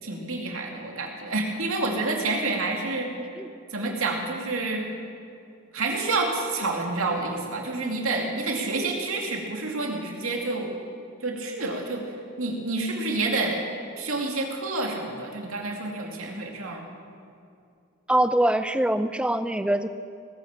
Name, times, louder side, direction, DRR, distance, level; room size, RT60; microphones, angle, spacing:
voice 1, 0.0-3.1 3.7-4.9 5.7-10.7 11.2-12.0 12.4-13.6 14.0-16.9, right 3 dB, 85° right, 1 dB, 2.4 m, -28 dB
voice 2, 18.1-19.9, right 1 dB, 5° right, 11 dB, 0.4 m, -23 dB
18.5 x 9.2 x 7.3 m, 2.5 s
head